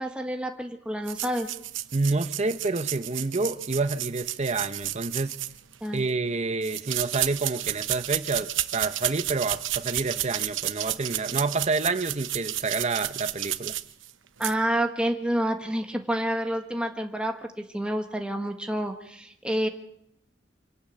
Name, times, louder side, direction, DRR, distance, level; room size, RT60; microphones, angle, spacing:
voice 1, 0.0-1.5 5.8-6.0 14.4-19.7, right 1 dB, 5° right, 1.4 m, -28 dB
sound 1, 1.1-6.0 6.6-14.1 14.4-14.5, right 14 dB, 85° right, 0.9 m, -32 dB
voice 2, 1.9-5.4 5.9-13.7, right 3 dB, 35° right, 0.9 m, -28 dB
25.5 x 12.0 x 8.6 m
head